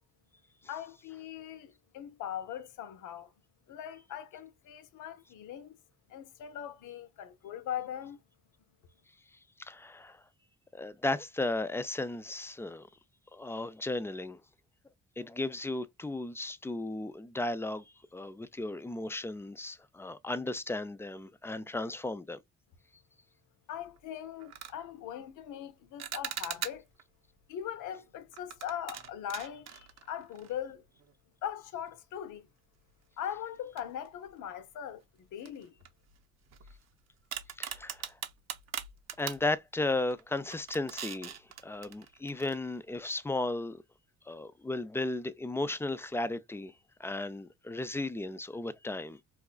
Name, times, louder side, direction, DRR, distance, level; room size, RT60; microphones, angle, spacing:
voice 1, 0.7-3.3 3.7-5.8 6.1-8.2 23.7-26.8 27.5-30.8 31.4-32.5 33.2-35.7, left 10 dB, 80° left, 0.7 m, -40 dB
voice 2, 9.6-10.2 10.7-12.9 13.3-14.4 15.2-17.8 18.1-22.4 37.6-38.2 39.2-43.8 44.3-46.7 47.0-49.2, left 2 dB, 10° left, 0.4 m, -35 dB
sound 1, 23.8-24.0 24.4-24.8 26.0-27.0 28.3-30.7 31.0-31.1 31.9-32.0 33.8-34.4 34.8-34.9 35.4-36.9 37.3-39.5 40.0-40.2 40.5-42.5, right 9 dB, 60° right, 0.7 m, -41 dB
4.8 x 2.3 x 2.3 m
cardioid pair, 90°, 30 cm